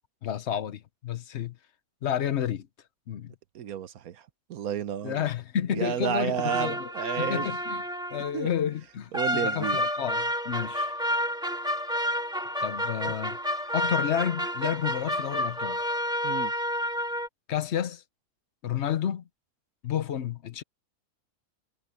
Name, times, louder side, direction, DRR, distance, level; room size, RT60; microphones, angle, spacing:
voice 1, 0.2-1.6 2.0-2.7 3.1-3.3 5.0-6.9 7.2-7.8 8.1-10.9 12.6-13.4 13.7-15.8 17.5-18.0 18.6-19.2 19.8-20.6, left 9 dB, 55° left, 1.0 m, -30 dB
voice 2, 3.5-4.2 4.5-5.3 5.7-7.5 8.3-8.5 9.1-9.8 13.0-13.1 16.2-16.5, right 9 dB, 75° right, 1.4 m, -31 dB
sound 1, 6.4-8.4 9.1-17.3, equal, 5° right, 2.0 m, -30 dB
omnidirectional pair, 1.5 m